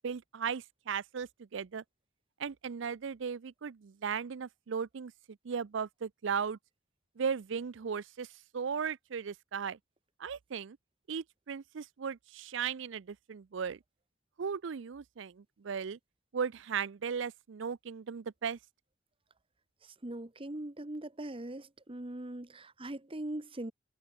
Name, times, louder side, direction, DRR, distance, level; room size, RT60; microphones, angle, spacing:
voice 1, 0.0-1.8 2.4-5.1 5.4-6.6 7.2-8.3 8.5-9.8 10.2-10.8 11.1-13.8 14.4-16.0 16.3-18.6, right 6 dB, 65° right, 0.5 m, -36 dB
voice 2, 19.8-23.7, right 1 dB, 25° right, 1.2 m, -41 dB
head